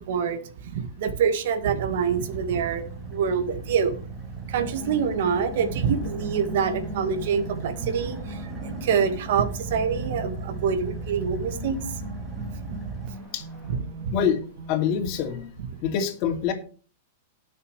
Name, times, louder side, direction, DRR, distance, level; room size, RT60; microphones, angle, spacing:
voice 1, 0.0-4.0 4.4-12.0 12.6-13.3 13.7-14.1 15.7-15.8, right 6 dB, 65° right, 9 dB, 1.7 m, -26 dB
Car / Idling, 0.9-13.7, right 3 dB, 5° left, 2.2 m, -38 dB
sound 1, 4.6-15.5, right 2 dB, 40° right, 5.1 m, -38 dB
voice 2, 14.7-15.4 15.8-16.5, left 8 dB, 40° left, 2 dB, 2.6 m, -25 dB
18.5 x 6.9 x 3.3 m, 0.39 s
supercardioid pair, 155°, 0 cm